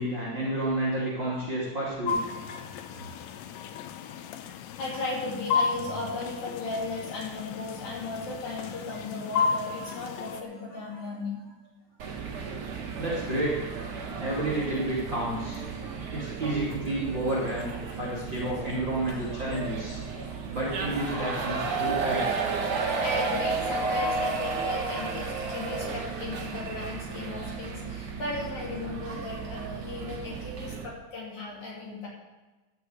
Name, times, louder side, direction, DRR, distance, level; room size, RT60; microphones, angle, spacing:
voice 1, 0.0-2.2 12.9-13.7 14.2-15.6 16.1-17.7 18.0-20.0 20.5-22.3, right 1 dB, 35° right, -7 dB, 2.5 m, -30 dB
sound 1, 2.1-10.4, left 6 dB, 80° left, 2.5 m, -33 dB
voice 2, 2.3-11.5 14.0-14.4 15.7-16.6 17.2-17.5 18.6-18.9 19.9-20.6 21.9-32.1, left 2 dB, 50° left, -4 dB, 3.9 m, -37 dB
sound 2, 12.0-30.9, right 4 dB, 65° right, 1.3 m, -33 dB
12.0 x 6.8 x 7.9 m, 1.2 s
omnidirectional pair, 4.9 m